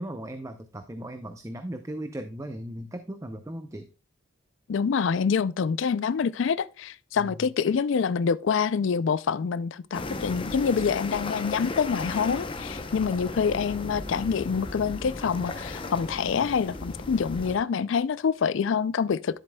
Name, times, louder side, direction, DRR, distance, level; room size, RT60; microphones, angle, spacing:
voice 1, 0.0-3.9 7.2-7.5, right 1 dB, 15° right, 0.5 m, -37 dB
voice 2, 4.7-19.4, left 6 dB, 65° left, 0.4 m, -26 dB
sound 1, 9.9-17.6, left 2 dB, 25° left, 0.7 m, -36 dB
11.0 x 7.5 x 2.2 m
head